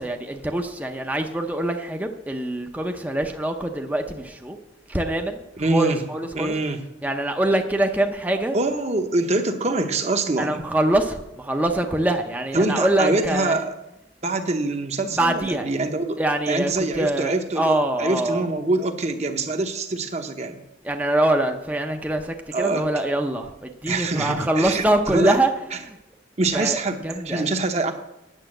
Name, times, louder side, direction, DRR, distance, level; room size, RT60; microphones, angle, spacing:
voice 1, 0.0-4.6 4.9-5.4 5.7-6.5 7.0-8.6 10.4-13.6 15.2-15.7 16.2-18.4 20.8-25.5 25.8-26.0 26.5-26.8 27.0-27.4, right 1 dB, 10° right, 4 dB, 0.6 m, -24 dB
voice 2, 5.6-6.0 6.3-6.8 8.5-10.6 12.5-13.8 14.2-16.2 16.5-20.6 22.5-22.9 23.9-25.4 25.7-25.8 26.4-27.9, right 2 dB, 35° right, 7 dB, 0.9 m, -24 dB
9.2 x 6.9 x 7.7 m, 0.90 s
head